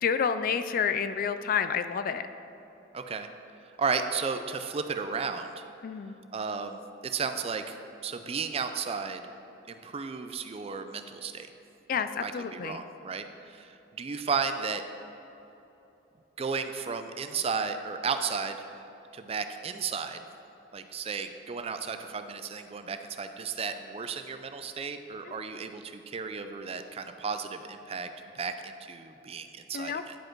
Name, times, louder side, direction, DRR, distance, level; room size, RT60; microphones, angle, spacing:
voice 1, 0.0-2.2 5.8-6.1 11.9-12.8 25.3-25.4 29.7-30.0, left 7 dB, 50° left, 11 dB, 0.3 m, -29 dB
voice 2, 2.9-3.3 3.8-5.7 6.3-7.8 8.0-9.2 9.7-11.5 11.9-14.8 16.4-18.7 19.1-20.2 20.7-30.2, right 5 dB, 35° right, 8 dB, 0.4 m, -34 dB
10.5 x 5.1 x 4.5 m, 2.9 s
head